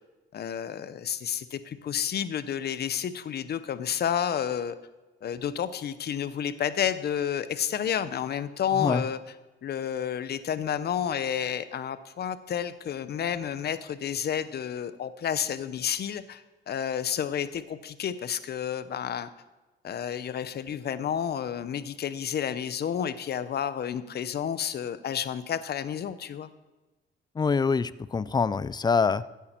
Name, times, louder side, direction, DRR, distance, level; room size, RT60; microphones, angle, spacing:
voice 1, 0.3-4.8 5.2-9.2 9.6-19.3 19.8-26.5, left 9 dB, 55° left, 13 dB, 0.8 m, -30 dB
voice 2, 27.4-29.3, left 5 dB, 20° left, 17 dB, 0.4 m, -25 dB
15.0 x 8.5 x 4.4 m, 1.1 s
cardioid pair, 90°, 20 cm